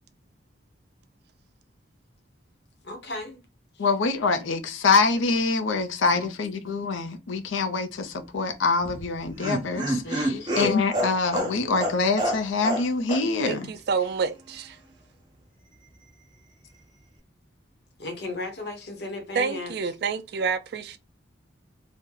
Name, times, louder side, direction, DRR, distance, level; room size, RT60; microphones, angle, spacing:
voice 1, 2.8-3.4 3.7-3.9 6.1-6.3 10.0-10.6 18.0-19.8, left 2 dB, 55° left, 0.8 m, -36 dB
voice 2, 3.8-13.7, left 4 dB, 90° left, 0.5 m, -25 dB
Laughter, 8.8-12.8 13.1-13.2 13.5-13.6, right 1 dB, 20° right, 0.9 m, -28 dB
voice 3, 13.5-14.8 19.3-21.0, right 5 dB, 55° right, 0.3 m, -28 dB
2.8 x 2.1 x 3.7 m
head